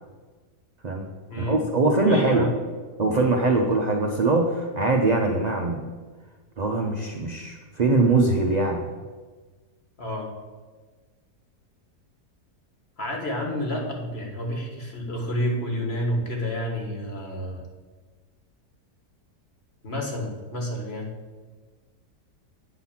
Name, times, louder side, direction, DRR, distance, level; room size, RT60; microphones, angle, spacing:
voice 1, 1.4-2.5 3.0-5.8 6.6-8.8, right 2 dB, 60° right, 1 dB, 0.4 m, -22 dB
voice 2, 2.0-2.5 10.0-10.3 13.0-17.6 19.8-21.1, equal, 40° left, 0 dB, 1.6 m, -29 dB
9.1 x 4.1 x 7.2 m, 1.4 s
omnidirectional pair, 1.8 m